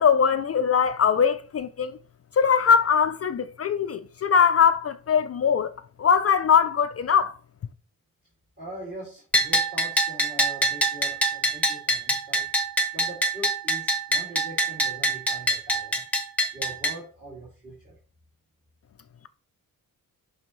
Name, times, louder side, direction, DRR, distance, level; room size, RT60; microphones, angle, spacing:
voice 1, 0.0-1.9 2.4-5.7 6.0-7.3, left 7 dB, 45° left, 0.4 m, -21 dB
voice 2, 8.6-12.4 12.9-16.0 16.5-18.0, right 1 dB, 30° right, 2.5 m, -42 dB
Bell, 9.3-17.0, right 1 dB, 5° left, 1.0 m, -25 dB
11.0 x 4.1 x 3.1 m
wide cardioid pair, 140°, 35 cm